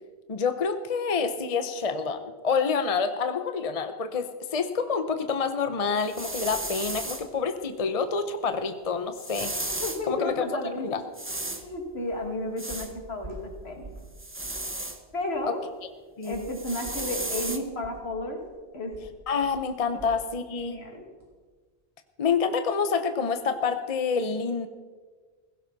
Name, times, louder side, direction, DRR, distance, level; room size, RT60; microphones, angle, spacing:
voice 1, 0.3-9.5 10.1-10.4 10.8-11.0 15.4-15.5 16.2-16.5 19.3-20.8 22.2-24.7, left 5 dB, 40° left, 9 dB, 0.8 m, -27 dB
sound 1, 6.0-7.3 9.2-10.0 11.1-11.6 12.6-12.9 14.2-15.0 16.2-17.6, right 1 dB, 10° right, 1.0 m, -34 dB
voice 2, 9.8-10.9 11.5-13.9 15.1-15.6 16.2-18.4 18.7-18.9 19.9-20.0 20.6-21.1, left 1 dB, 75° left, 2 dB, 2.5 m, -33 dB
sound 2, 11.6-11.7 12.1-12.4 12.7-14.2 14.4-14.7 15.1-15.2 16.3-20.3 20.6-20.8 21.2-21.3, right 2 dB, 50° right, 3.5 m, -46 dB
16.5 x 16.0 x 4.0 m, 1.5 s
omnidirectional pair, 1.1 m